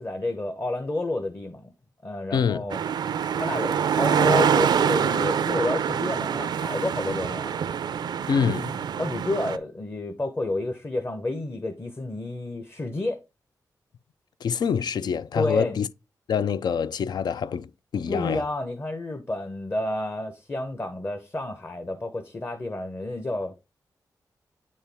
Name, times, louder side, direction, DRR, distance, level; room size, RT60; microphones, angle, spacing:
voice 1, 0.0-1.7 2.0-2.8 3.3-7.6 9.0-13.2 15.4-15.8 18.1-23.6, left 2 dB, 35° left, 0.9 m, -30 dB
voice 2, 2.3-2.6 8.3-8.8 14.4-15.9 16.3-18.4, left 7 dB, 80° left, 0.4 m, -26 dB
sound 1, 2.7-9.6, right 8 dB, 90° right, 0.4 m, -25 dB
8.2 x 4.3 x 3.5 m
cardioid pair, 80°, 7 cm